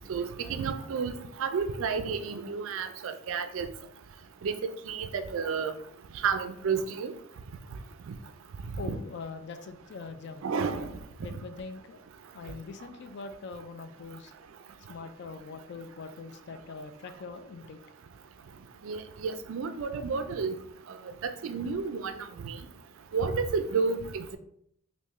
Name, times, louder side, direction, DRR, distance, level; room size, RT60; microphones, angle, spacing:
voice 1, 0.1-3.7 4.4-4.5 4.9-5.7 6.2-7.1 8.1-8.2 10.4-10.9 18.8-20.6 21.2-22.6 23.1-24.4, right 5 dB, 60° right, 9 dB, 0.3 m, -31 dB
voice 2, 8.8-10.5 11.2-12.1 12.3-14.3 14.9-17.8, left 4 dB, 50° left, 9 dB, 0.3 m, -42 dB
3.5 x 2.5 x 3.1 m, 0.71 s
head